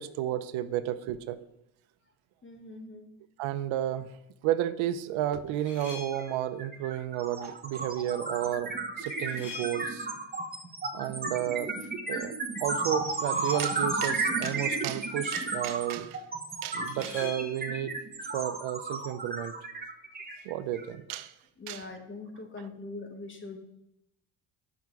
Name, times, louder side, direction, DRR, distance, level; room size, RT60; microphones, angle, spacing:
voice 1, 0.0-1.4 3.4-4.2 4.4-10.1 10.9-11.7 12.1-16.2 16.6-17.9 18.3-19.5 20.4-21.3 21.7-21.9, right 12 dB, 90° right, 13 dB, 0.7 m, -32 dB
voice 2, 2.4-3.1 21.6-23.6, left 3 dB, 25° left, 5 dB, 1.4 m, -42 dB
sound 1, 5.5-6.5 9.1-10.3 13.1-14.1 16.9-17.8, left 4 dB, 40° left, 2.3 m, -45 dB
sound 2, 6.1-6.3 6.6-20.9, right 3 dB, 20° right, 1.4 m, -33 dB
8.1 x 6.0 x 4.6 m, 0.83 s
cardioid pair, 115°, 46 cm